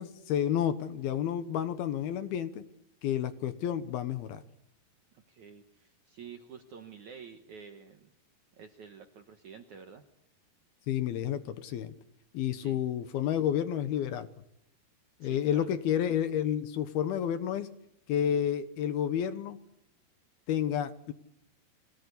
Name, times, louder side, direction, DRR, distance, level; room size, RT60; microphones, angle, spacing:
voice 1, 0.0-2.6 3.0-4.4 10.9-11.9 12.3-14.3 15.2-17.7 18.1-19.6 20.5-21.1, left 10 dB, 70° left, 11 dB, 2.7 m, -30 dB
voice 2, 5.1-8.1 8.6-10.0 12.6-12.8 15.2-15.7, right 7 dB, 65° right, 6 dB, 1.9 m, -49 dB
25.0 x 18.0 x 8.4 m, 0.79 s
omnidirectional pair, 5.1 m